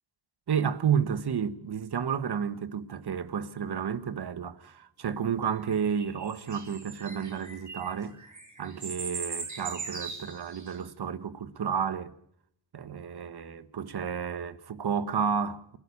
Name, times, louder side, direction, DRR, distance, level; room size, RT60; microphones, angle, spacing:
voice 1, 0.5-8.2 8.6-12.1 12.7-15.8, right 7 dB, 55° right, 1.4 m, -31 dB
sound 1, 5.5-10.8, right 4 dB, 40° right, 4.9 m, -40 dB
29.5 x 13.5 x 8.4 m
wide cardioid pair, 110°, 45 cm